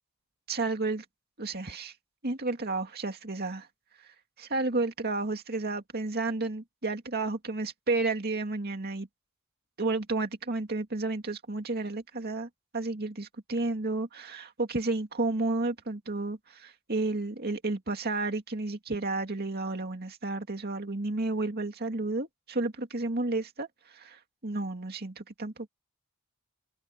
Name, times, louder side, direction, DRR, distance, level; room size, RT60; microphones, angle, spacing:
voice 1, 0.5-1.0 1.4-1.9 2.2-3.7 4.0-4.1 4.4-9.1 9.8-25.7, right 2 dB, 50° right, 2.3 m, -32 dB
open air
head